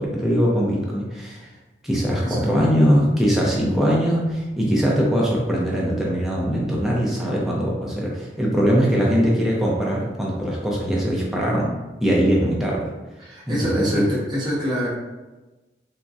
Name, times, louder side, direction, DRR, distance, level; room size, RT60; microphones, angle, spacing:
voice 1, 0.0-1.5 1.8-11.7 12.0-12.9 13.5-14.1, equal, ahead, -5 dB, 0.5 m, -21 dB
voice 2, 2.2-2.6 13.2-14.9, equal, 25° right, -8 dB, 0.8 m, -26 dB
3.4 x 2.1 x 2.6 m, 1.1 s
head